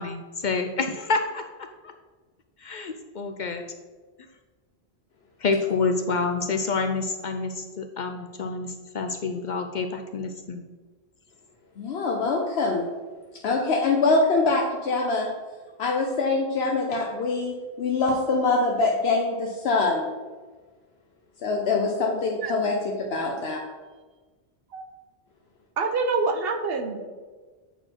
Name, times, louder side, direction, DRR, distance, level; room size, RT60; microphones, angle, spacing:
voice 1, 0.0-1.9 2.6-3.6 5.4-10.6, left 4 dB, 55° left, 6 dB, 0.6 m, -28 dB
voice 2, 11.8-12.8 13.4-15.3 15.8-20.1 21.4-23.6, left 3 dB, 75° left, 0 dB, 1.0 m, -24 dB
voice 3, 25.8-27.1, right 4 dB, 65° right, 6 dB, 0.9 m, -26 dB
8.1 x 4.4 x 4.4 m, 1.3 s
omnidirectional pair, 1.1 m